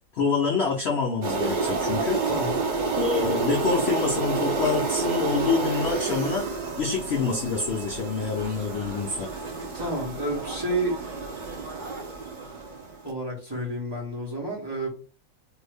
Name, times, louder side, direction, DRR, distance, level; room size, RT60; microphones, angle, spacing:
voice 1, 0.1-2.3 3.0-6.5 6.8-9.3, left 5 dB, 65° left, 0.6 m, -27 dB
sound 1, 1.2-13.0, right 4 dB, 55° right, 0.5 m, -29 dB
voice 2, 2.2-2.6 9.7-11.0 13.0-14.9, right 1 dB, 15° right, 1.0 m, -30 dB
2.7 x 2.6 x 3.3 m
omnidirectional pair, 1.7 m